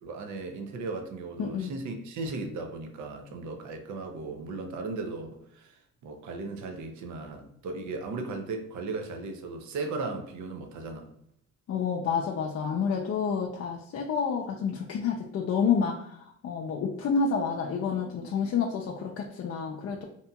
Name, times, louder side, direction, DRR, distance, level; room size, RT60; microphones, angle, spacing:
voice 1, 0.0-11.1 19.8-20.0, right 3 dB, 70° right, 5 dB, 0.6 m, -37 dB
voice 2, 1.4-1.7 11.7-20.0, left 6 dB, 50° left, 0 dB, 0.4 m, -29 dB
2.7 x 2.7 x 2.2 m, 0.73 s
cardioid pair, 90°, 30 cm